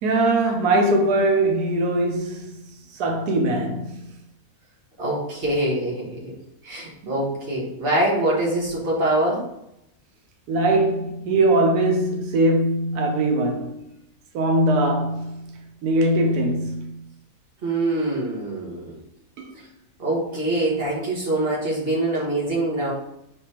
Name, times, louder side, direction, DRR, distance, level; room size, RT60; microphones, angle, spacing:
voice 1, 0.0-4.1 7.0-7.1 10.5-13.8 14.3-17.0 19.4-19.5, right 1 dB, 90° right, 1.2 m, -21 dB
voice 2, 5.0-6.4 6.6-9.5 17.6-19.0 20.0-22.9, right 1 dB, 40° right, 1.6 m, -24 dB
5.3 x 3.3 x 2.9 m
omnidirectional pair, 1.6 m